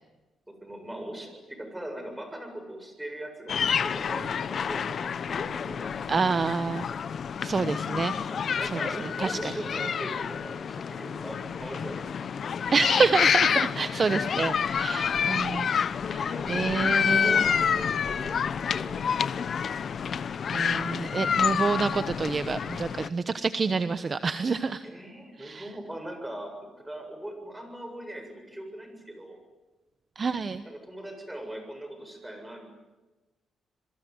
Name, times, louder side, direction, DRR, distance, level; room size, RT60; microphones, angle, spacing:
voice 1, 0.5-4.9 5.1-5.9 7.7-7.9 8.3-12.3 14.9-15.1 16.1-19.3 21.3-21.5 24.8-29.4 30.6-32.6, right 1 dB, 10° right, 6 dB, 7.6 m, -40 dB
sound 1, 3.5-23.1, left 7 dB, 55° left, 1.0 m, -28 dB
voice 2, 6.1-6.9 7.4-8.2 9.2-9.4 12.7-15.7 16.1-17.4 20.5-24.8 25.4-25.6 30.2-30.6, right 4 dB, 35° right, 12 dB, 1.1 m, -27 dB
27.5 x 22.5 x 9.7 m, 1.1 s
cardioid pair, 105°, 0 cm